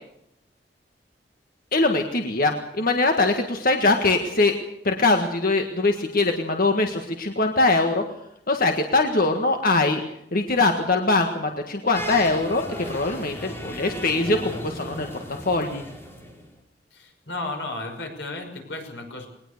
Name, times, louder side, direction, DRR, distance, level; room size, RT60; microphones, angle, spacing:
voice 1, 1.7-4.5 4.8-8.0 8.5-10.0 10.3-15.1 15.4-15.8, left 3 dB, 55° left, 4 dB, 1.7 m, -22 dB
sound 1, 11.9-16.5, equal, 15° left, 4.8 m, -36 dB
voice 2, 16.9-19.3, left 2 dB, 90° left, 4 dB, 6.0 m, -34 dB
21.5 x 19.5 x 6.7 m, 0.79 s
head